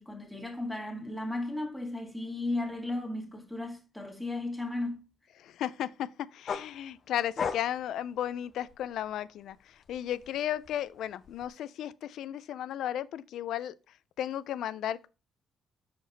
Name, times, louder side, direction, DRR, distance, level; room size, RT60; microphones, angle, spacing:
voice 1, 0.0-5.0, left 2 dB, 5° left, 1.8 m, -35 dB
voice 2, 5.4-13.7 14.2-15.1, left 11 dB, 80° left, 0.4 m, -34 dB
sound 1, 6.5-9.1 9.5-11.5, left 6 dB, 50° left, 0.8 m, -38 dB
6.1 x 4.9 x 4.0 m
cardioid pair, 90°, 0 cm